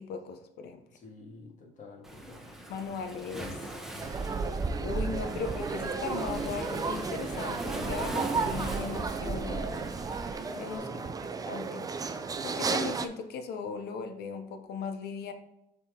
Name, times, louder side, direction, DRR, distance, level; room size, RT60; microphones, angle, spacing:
voice 1, 0.0-0.8 2.7-3.6 4.7-9.9 10.5-10.9 11.2-11.9 12.4-15.3, left 5 dB, 70° left, 8 dB, 0.7 m, -38 dB
voice 2, 0.9-2.4 10.7-11.5, left 3 dB, 45° left, -1 dB, 1.8 m, -49 dB
Waves surf, 2.0-10.8, right 1 dB, ahead, 0.9 m, -42 dB
sound 1, 4.0-13.1, right 4 dB, 20° right, 0.4 m, -33 dB
7.0 x 3.8 x 3.7 m, 0.88 s
cardioid pair, 110°, 17 cm